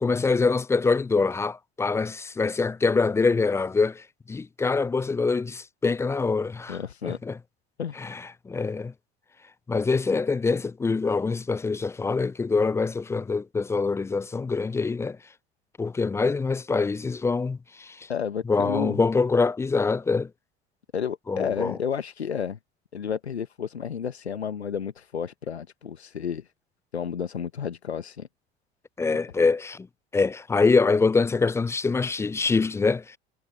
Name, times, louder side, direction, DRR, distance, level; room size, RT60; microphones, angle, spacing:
voice 1, 0.0-7.4 8.0-8.9 9.7-15.2 15.8-18.1 18.5-20.3 21.3-21.8 29.0-29.9 30.1-33.2, left 4 dB, 10° left, 0.3 m, -24 dB
voice 2, 6.7-7.2 7.8-8.0 18.1-19.0 20.9-22.6 22.9-26.5 26.9-28.3, left 7 dB, 85° left, 1.2 m, -31 dB
figure-of-eight pair, 70°, 32 cm